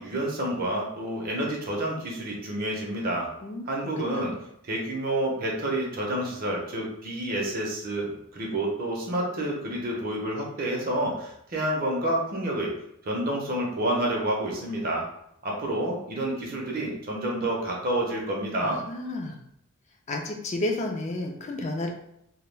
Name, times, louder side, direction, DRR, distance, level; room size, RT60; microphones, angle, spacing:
voice 1, 0.0-3.3 3.7-4.3 4.6-12.7 13.0-15.0 15.4-18.8, right 1 dB, 40° right, -1 dB, 0.5 m, -29 dB
voice 2, 18.6-19.4 20.1-21.9, left 2 dB, 30° left, 2 dB, 0.3 m, -31 dB
2.2 x 2.1 x 3.1 m, 0.77 s
head